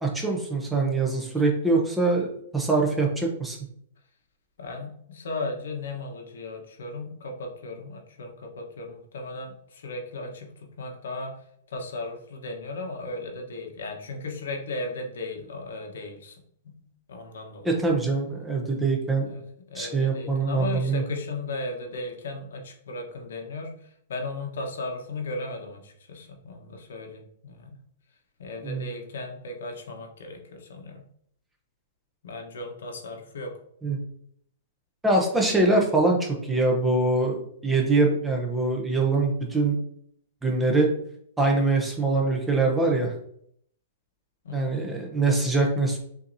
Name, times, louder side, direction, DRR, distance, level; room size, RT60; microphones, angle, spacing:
voice 1, 0.0-2.3 2.5-3.6 17.6-19.3 19.8-21.0 28.6-28.9 33.8-34.0 35.0-39.8 40.4-40.9 41.4-43.1 44.5-46.0, right 3 dB, 5° right, 0 dB, 0.7 m, -23 dB
voice 2, 4.6-11.3 11.7-17.8 19.3-19.4 19.7-27.8 28.4-31.0 32.2-33.5 44.4-44.8, left 2 dB, 80° left, 2 dB, 1.1 m, -36 dB
6.1 x 2.8 x 2.7 m, 0.67 s
hypercardioid pair, 155°, 0 cm